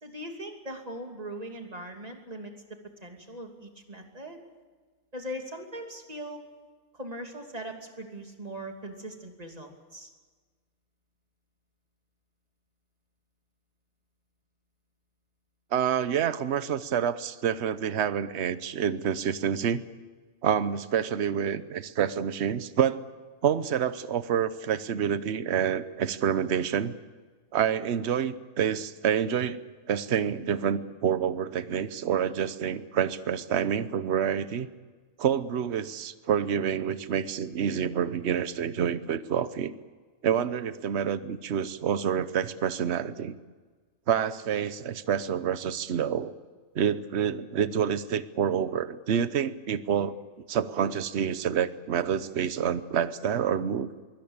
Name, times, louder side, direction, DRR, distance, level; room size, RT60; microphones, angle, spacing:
voice 1, 0.0-2.5 3.0-4.4 5.1-6.4 6.9-10.1, right 1 dB, 30° right, 3 dB, 2.9 m, -40 dB
voice 2, 15.7-19.8 20.4-23.0 23.4-26.9 27.5-29.6 29.9-34.7 35.2-39.7 40.2-43.3 44.1-46.3 46.7-50.2 50.5-53.9, right 8 dB, 55° right, 14 dB, 1.1 m, -28 dB
23.0 x 18.0 x 8.8 m, 1.4 s
omnidirectional pair, 1.4 m